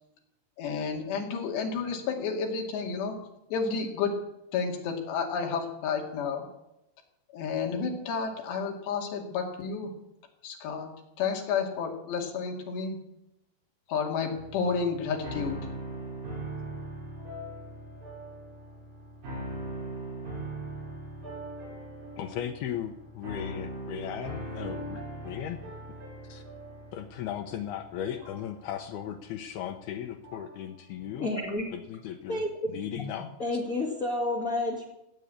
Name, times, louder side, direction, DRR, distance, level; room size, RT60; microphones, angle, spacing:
voice 1, 0.6-3.2 3.5-4.2 4.5-6.5 7.3-9.9 10.4-10.9 11.2-13.0 13.9-15.6 32.7-32.8, left 5 dB, 65° left, 1 dB, 4.2 m, -31 dB
sound 1, 14.3-30.6, right 1 dB, 55° right, 8.8 m, -41 dB
voice 2, 22.2-25.6 26.3-26.4 26.9-31.3 31.7-32.4 32.7-33.6, left 10 dB, 80° left, 6 dB, 2.2 m, -37 dB
voice 3, 31.2-31.6 32.3-32.5 32.9-33.1 33.4-34.8, left 2 dB, 35° left, -1 dB, 1.4 m, -30 dB
16.5 x 8.3 x 8.6 m, 0.87 s
omnidirectional pair, 5.5 m